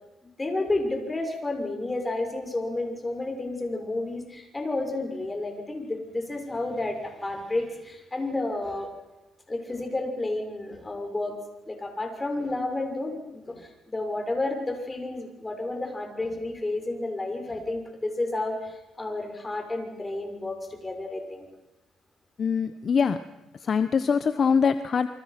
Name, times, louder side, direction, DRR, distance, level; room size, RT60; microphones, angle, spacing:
voice 1, 0.4-8.9 9.5-11.4 11.7-21.5, left 2 dB, 20° left, 4 dB, 6.4 m, -31 dB
voice 2, 22.4-23.2 23.6-25.1, left 6 dB, 50° left, 11 dB, 1.1 m, -23 dB
28.5 x 25.0 x 6.0 m, 0.98 s
cardioid pair, 90°, 0 cm